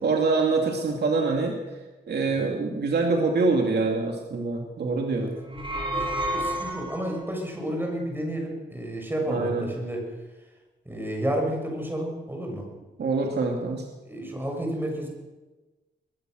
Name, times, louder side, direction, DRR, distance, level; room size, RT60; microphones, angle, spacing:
voice 1, 0.0-1.6 2.1-5.3 9.3-9.7 13.0-13.8, right 3 dB, 60° right, 1 dB, 2.8 m, -25 dB
sound 1, 5.4-7.3, right 1 dB, 25° right, 4.1 m, -30 dB
voice 2, 6.3-10.1 10.8-12.7 14.0-15.1, right 1 dB, 10° right, 1 dB, 6.5 m, -31 dB
23.0 x 20.0 x 6.5 m, 1.2 s
wide cardioid pair, 140°, 19 cm